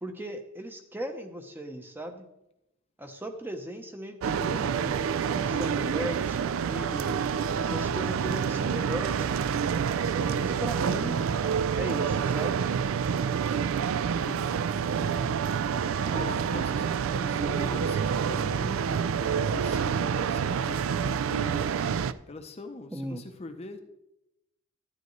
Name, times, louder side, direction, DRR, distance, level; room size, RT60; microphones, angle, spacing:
voice 1, 0.0-2.2 3.0-7.2 7.6-9.7 10.1-11.3 11.8-12.5 22.9-23.2, equal, 10° right, 6 dB, 0.7 m, -37 dB
sound 1, 4.2-22.1, right 7 dB, 65° right, 0.3 m, -28 dB
voice 2, 14.1-15.4 15.7-21.7 22.3-23.8, left 2 dB, 30° left, 6 dB, 0.6 m, -43 dB
12.0 x 9.4 x 3.1 m, 0.87 s
head